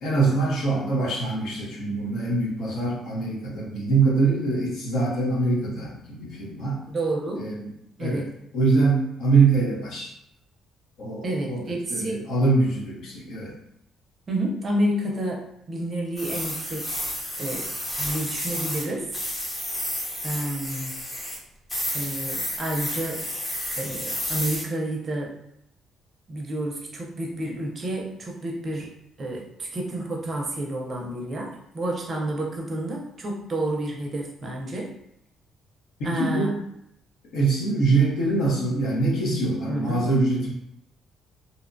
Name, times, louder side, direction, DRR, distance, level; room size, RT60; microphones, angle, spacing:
voice 1, 0.0-6.8 7.4-7.7 8.0-8.2 8.5-10.1 11.0-13.5 36.0-36.5 37.3-40.5, right 3 dB, 70° left, -3 dB, 0.8 m, -24 dB
voice 2, 6.9-7.5 8.0-8.3 11.2-12.2 14.3-15.4 15.7-17.0 17.4-17.7 18.0-19.1 20.2-21.0 21.9-23.2 23.8-25.3 26.3-28.9 29.2-34.9 36.0-36.5 39.7-40.1, right 1 dB, 35° right, 0 dB, 0.5 m, -29 dB
sound 1, 16.2-18.9 19.1-21.4 21.7-24.6, left 1 dB, 20° left, 0.7 m, -31 dB
2.7 x 2.1 x 2.5 m, 0.78 s
cardioid pair, 135°, 0 cm